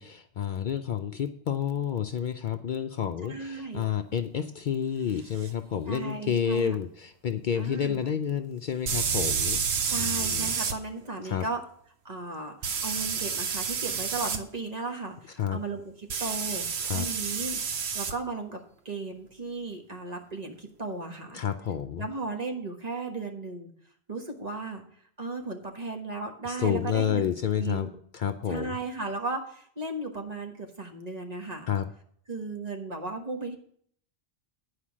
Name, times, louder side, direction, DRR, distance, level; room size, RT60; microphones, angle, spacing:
voice 1, 0.0-9.6 10.0-10.5 11.2-11.4 15.4-15.6 16.8-17.1 21.3-22.1 26.5-27.9 28.1-28.8 31.7-31.9, left 8 dB, 60° left, 8 dB, 0.6 m, -30 dB
voice 2, 3.2-3.9 5.9-6.8 7.6-8.1 9.9-11.6 12.0-21.4 22.0-23.7 24.1-24.8 25.2-27.3 27.6-27.9 28.5-31.7 32.3-33.6, right 3 dB, 40° right, 2 dB, 1.4 m, -36 dB
sound 1, 5.4-5.5 8.9-10.8 12.6-14.4 16.1-18.1, right 6 dB, 75° right, 1.1 m, -29 dB
10.0 x 5.0 x 7.3 m, 0.63 s
omnidirectional pair, 1.1 m